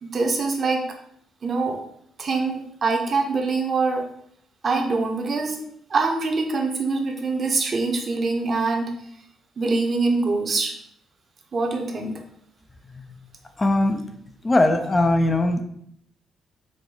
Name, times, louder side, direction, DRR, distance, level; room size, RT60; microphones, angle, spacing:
voice 1, 0.0-0.9 1.4-1.8 2.2-4.1 4.6-5.6 5.9-8.9 9.6-10.7 11.5-12.1, right 3 dB, 45° right, 3 dB, 0.8 m, -24 dB
voice 2, 13.6-14.1 14.4-15.6, left 1 dB, 25° left, 6 dB, 0.4 m, -20 dB
4.9 x 2.2 x 3.8 m, 0.70 s
cardioid pair, 90°, 0 cm